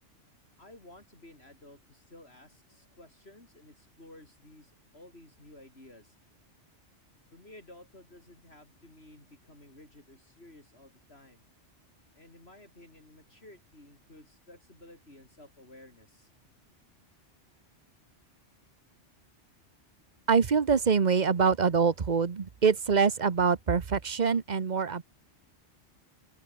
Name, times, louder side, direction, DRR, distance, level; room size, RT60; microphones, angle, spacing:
voice 1, 0.6-6.2 7.3-11.4 12.1-16.3, left 1 dB, 60° left, 6.0 m, -54 dB
voice 2, 20.3-25.0, right 5 dB, 40° right, 1.1 m, -25 dB
open air
omnidirectional pair, 1.2 m